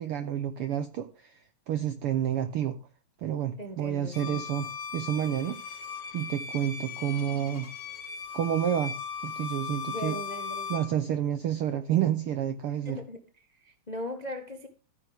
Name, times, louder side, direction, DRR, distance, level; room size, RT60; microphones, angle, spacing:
voice 1, 0.0-1.4 1.7-2.8 3.2-5.6 6.1-7.7 8.3-8.9 9.2-10.2 10.7-13.0, right 10 dB, 80° right, 10 dB, 1.2 m, -29 dB
voice 2, 3.6-4.5 9.9-10.7 12.8-13.2 13.5-14.7, left 1 dB, 65° left, 4 dB, 0.4 m, -38 dB
Bowed string instrument, 4.1-10.9, left 6 dB, 50° left, 1.5 m, -38 dB
14.5 x 9.8 x 3.5 m, 0.35 s
omnidirectional pair, 3.5 m